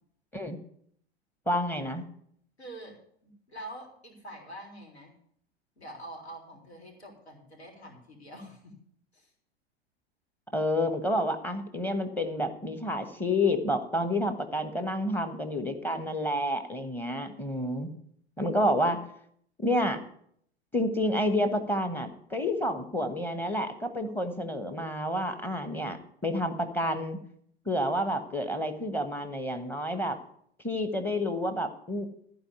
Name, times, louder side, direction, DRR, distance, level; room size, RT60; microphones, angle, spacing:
voice 1, 1.5-2.0 10.5-17.9 18.4-19.0 19.6-20.0 20.7-27.2 27.7-30.2 30.6-32.1, left 1 dB, 5° left, 8 dB, 1.3 m, -29 dB
voice 2, 2.6-5.1 5.8-8.7 9.1-9.3, right 1 dB, 80° left, 0 dB, 4.0 m, -46 dB
14.5 x 4.9 x 9.4 m, 0.66 s
figure-of-eight pair, 95°, 32 cm